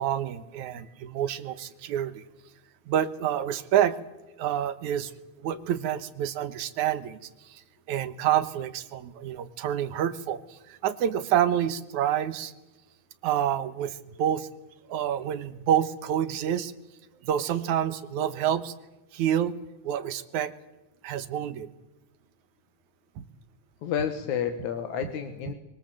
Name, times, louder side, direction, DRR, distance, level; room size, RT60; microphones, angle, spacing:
voice 1, 0.0-2.2 2.9-4.0 4.4-5.1 5.4-7.2 7.4-7.6 7.9-12.5 13.2-14.5 14.9-16.7 17.2-18.7 19.1-19.5 19.8-20.5 21.0-21.7 23.2-23.3 25.5-25.6, right 10 dB, 75° right, 13 dB, 2.6 m, -28 dB
voice 2, 23.8-25.5, left 8 dB, 70° left, 6 dB, 2.8 m, -30 dB
24.5 x 23.5 x 7.7 m, 1.0 s
omnidirectional pair, 3.5 m